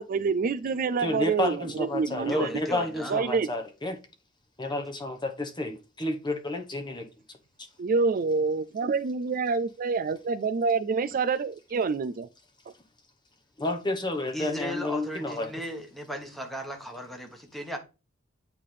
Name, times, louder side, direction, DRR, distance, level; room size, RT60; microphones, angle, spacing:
voice 1, 0.0-2.5 3.1-3.5 7.8-12.3, right 4 dB, 45° right, 0.3 m, -27 dB
voice 2, 1.0-4.0 4.6-7.1 13.6-15.5, left 1 dB, 20° left, 1.1 m, -30 dB
voice 3, 2.3-3.2 14.3-17.8, equal, ahead, 1.4 m, -36 dB
8.4 x 3.4 x 5.5 m
head